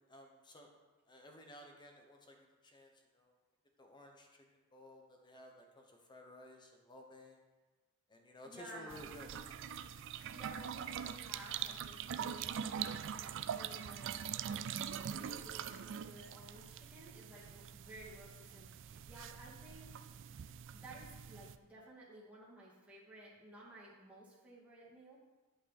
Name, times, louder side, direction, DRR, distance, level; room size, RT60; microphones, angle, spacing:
voice 1, 0.1-0.7 1.1-2.4 2.6-3.4 3.8-4.4 4.7-7.4 8.1-9.3, left 1 dB, 20° left, 2 dB, 1.1 m, -55 dB
voice 2, 8.4-9.1 10.3-14.2 15.1-20.0 20.7-25.2, right 1 dB, 5° right, -7 dB, 2.3 m, -55 dB
sound 1, 8.9-21.6, right 8 dB, 55° right, 0.4 m, -43 dB
11.0 x 5.4 x 4.3 m, 1.2 s
head